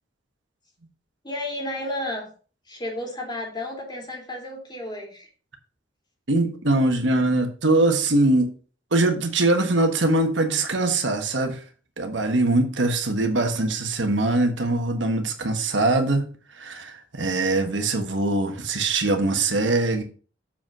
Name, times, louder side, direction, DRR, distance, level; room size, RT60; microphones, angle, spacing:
voice 1, 1.2-2.3 2.7-5.3, left 1 dB, 25° left, 0 dB, 3.0 m, -32 dB
voice 2, 6.3-8.5 8.9-11.6 12.0-16.3 16.5-20.0, right 2 dB, 70° right, 5 dB, 1.4 m, -22 dB
7.3 x 5.1 x 6.1 m, 0.39 s
head